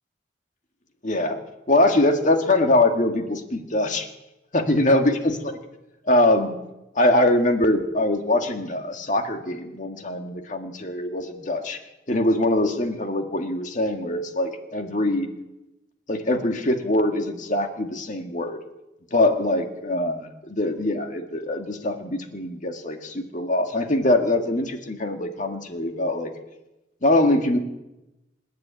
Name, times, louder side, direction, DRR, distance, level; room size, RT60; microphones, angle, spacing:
voice 1, 1.0-1.4 1.7-4.1 4.5-5.3 6.1-6.6 7.0-11.8 12.1-15.3 16.1-18.6 19.1-26.3 27.0-27.6, left 1 dB, 45° left, 5 dB, 1.9 m, -23 dB
27.0 x 10.5 x 9.2 m, 0.99 s
head